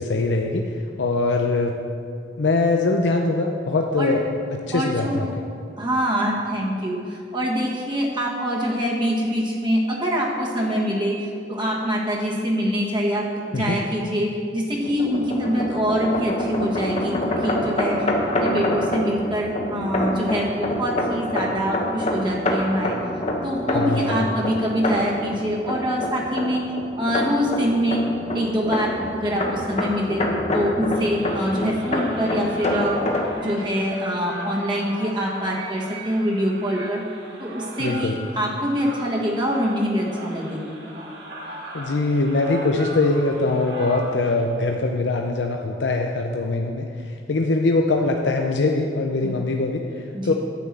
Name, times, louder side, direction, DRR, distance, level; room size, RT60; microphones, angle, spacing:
voice 1, 0.0-1.8 2.4-4.2 4.5-5.3 13.5-13.8 23.7-24.3 37.8-38.2 41.7-50.3, left 3 dB, 90° left, 2 dB, 0.6 m, -22 dB
voice 2, 4.7-5.3 5.8-23.0 23.4-26.6 27.0-28.0 28.3-30.3 30.5-32.9 33.4-37.0 37.4-40.8 49.2-49.5 50.1-50.3, equal, 25° right, -3 dB, 1.5 m, -24 dB
sound 1, 14.8-33.3, left 1 dB, 40° left, 1.2 m, -27 dB
sound 2, 30.9-44.4, right 2 dB, 75° right, 1.8 m, -38 dB
10.0 x 6.0 x 7.6 m, 2.4 s
head